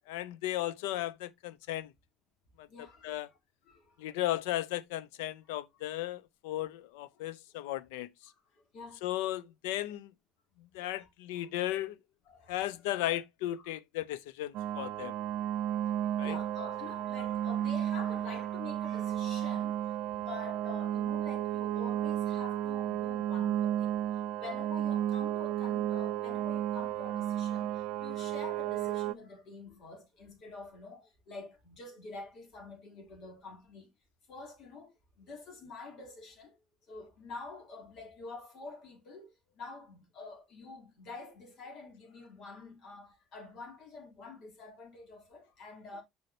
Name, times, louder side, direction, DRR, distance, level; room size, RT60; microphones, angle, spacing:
voice 1, 0.1-1.9 2.6-2.7 3.0-3.3 4.0-8.1 9.0-10.1 10.6-12.0 12.5-15.1 16.2-16.4, left 14 dB, 80° left, 0.6 m, -35 dB
voice 2, 2.7-3.4 3.7-4.2 5.4-5.5 7.1-7.4 8.3-9.0 10.7-11.1 11.4-11.5 12.3-12.6 13.6-13.8 15.8-33.9 34.3-36.6 36.9-46.0, left 3 dB, 60° left, 3.6 m, -48 dB
sound 1, 14.5-29.1, right 11 dB, 70° right, 0.5 m, -33 dB
7.6 x 5.6 x 2.8 m
hypercardioid pair, 60°, 0 cm